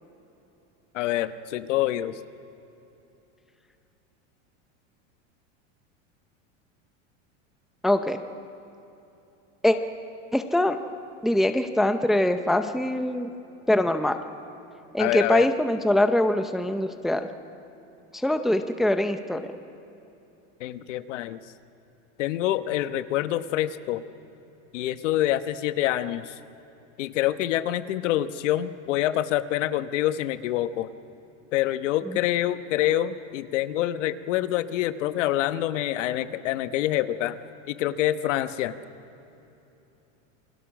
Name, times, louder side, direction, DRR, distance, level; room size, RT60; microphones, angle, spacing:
voice 1, 0.9-2.1 15.0-15.5 20.6-21.4 22.2-24.0 24.7-26.3 27.0-30.9 31.5-38.8, left 13 dB, 80° left, 11 dB, 1.2 m, -26 dB
voice 2, 7.8-8.2 9.6-9.8 10.3-10.8 11.2-13.3 13.7-14.2 14.9-17.3 18.1-19.4 32.1-32.2, left 1 dB, ahead, 8 dB, 0.5 m, -23 dB
28.0 x 22.0 x 6.3 m, 3.0 s
supercardioid pair, 160°, 36 cm